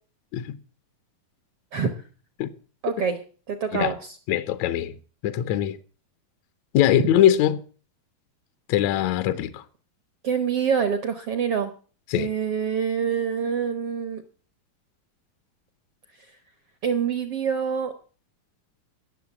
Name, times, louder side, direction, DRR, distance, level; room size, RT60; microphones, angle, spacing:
voice 1, 2.8-3.2 3.5-4.2 10.2-11.7 12.2-14.2 16.8-17.9, right 7 dB, 65° right, 1.4 m, -26 dB
voice 2, 4.3-4.9 5.2-5.8 6.7-7.6 8.7-9.6 12.1-12.3, left 11 dB, 80° left, 1.6 m, -22 dB
17.5 x 7.1 x 7.0 m
omnidirectional pair, 4.2 m